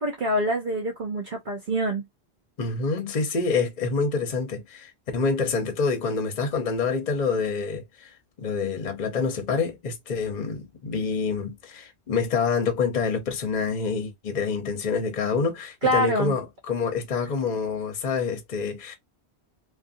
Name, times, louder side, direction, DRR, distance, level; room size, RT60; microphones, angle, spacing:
voice 1, 0.0-2.0 15.8-16.3, right 1 dB, 50° right, 0.8 m, -25 dB
voice 2, 2.6-19.0, left 4 dB, 45° left, 0.8 m, -27 dB
2.5 x 2.4 x 2.5 m
omnidirectional pair, 1.1 m